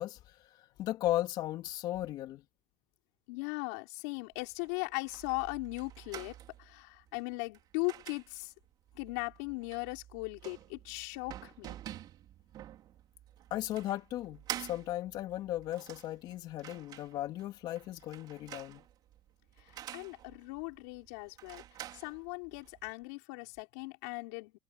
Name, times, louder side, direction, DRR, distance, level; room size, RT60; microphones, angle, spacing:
voice 1, 0.0-2.4 13.5-18.8, left 14 dB, 60° left, 3.4 m, -36 dB
voice 2, 3.3-8.5 8.9-11.7 19.6-21.6 21.9-24.6, left 28 dB, 85° left, 4.6 m, -39 dB
sound 1, 4.3-22.9, right 12 dB, 55° right, 4.4 m, -49 dB
supercardioid pair, 110°, 8 cm